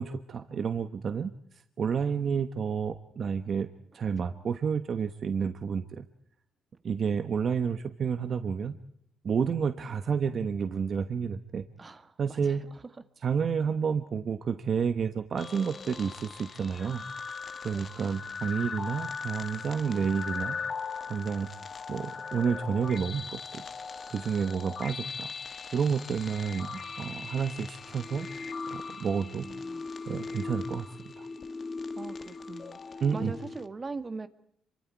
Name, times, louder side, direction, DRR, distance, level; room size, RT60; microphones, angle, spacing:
voice 1, 0.0-1.3 1.8-3.7 3.9-6.1 6.8-8.7 9.2-11.6 12.2-12.6 13.2-17.0 17.6-20.6 21.1-21.5 21.9-23.6 24.1-25.3 25.7-28.3 28.7-29.5 30.1-31.3 33.0-33.3, right 6 dB, 50° right, 10 dB, 1.2 m, -30 dB
voice 2, 11.8-12.8 17.7-17.9 29.0-29.9 31.9-34.3, right 4 dB, 30° right, 11 dB, 1.6 m, -42 dB
sound 1, 15.4-33.7, left 5 dB, 45° left, 1.2 m, -39 dB
26.5 x 24.0 x 4.7 m, 0.66 s
cardioid pair, 90°, 0 cm